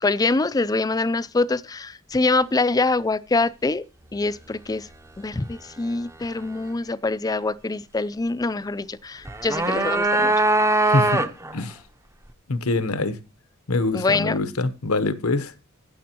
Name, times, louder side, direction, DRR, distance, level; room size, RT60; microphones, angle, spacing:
voice 1, 0.0-3.8 4.1-4.9 5.2-10.4 13.9-14.4, left 3 dB, 15° left, 0.4 m, -24 dB
sound 1, 9.3-11.6, right 2 dB, 15° right, 0.7 m, -21 dB
voice 2, 10.9-11.2 11.5-11.8 12.5-13.2 13.7-15.7, left 2 dB, 85° left, 1.0 m, -24 dB
15.0 x 7.0 x 3.0 m
head